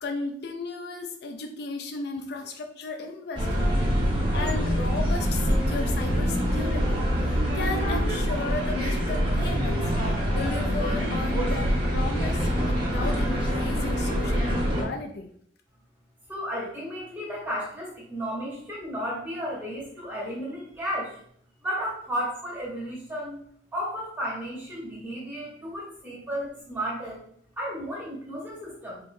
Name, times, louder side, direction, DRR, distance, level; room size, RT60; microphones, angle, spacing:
voice 1, 0.0-3.9 4.3-15.3, left 3 dB, 55° left, 4 dB, 0.4 m, -35 dB
sound 1, 3.3-14.8, equal, 25° right, 1.2 m, -25 dB
voice 2, 16.3-21.2 21.6-23.4 23.7-27.2 27.6-29.0, equal, 10° right, -6 dB, 1.3 m, -33 dB
4.6 x 3.1 x 2.7 m, 0.65 s
head